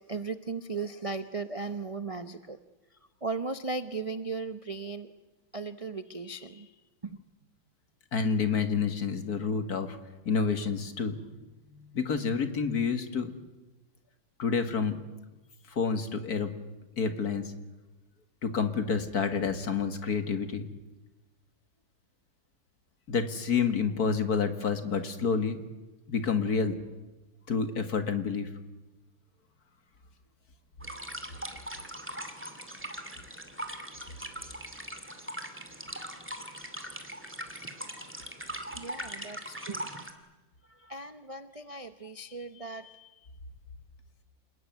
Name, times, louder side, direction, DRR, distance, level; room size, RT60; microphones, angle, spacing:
voice 1, 0.1-2.6 3.2-5.1 5.5-6.7 7.0-7.2 37.9-38.2 38.7-40.0 40.7-43.2, right 4 dB, 45° right, 10 dB, 0.4 m, -37 dB
voice 2, 8.1-10.0 10.3-11.2 11.9-13.3 14.4-15.0 15.7-16.5 17.0-17.5 18.4-20.6 23.1-25.6 26.1-26.8 27.5-28.5, left 5 dB, 50° left, 9 dB, 2.2 m, -28 dB
sound 1, 30.8-40.1, right 1 dB, 5° right, 2.2 m, -40 dB
28.0 x 19.5 x 9.4 m, 1.1 s
omnidirectional pair, 2.1 m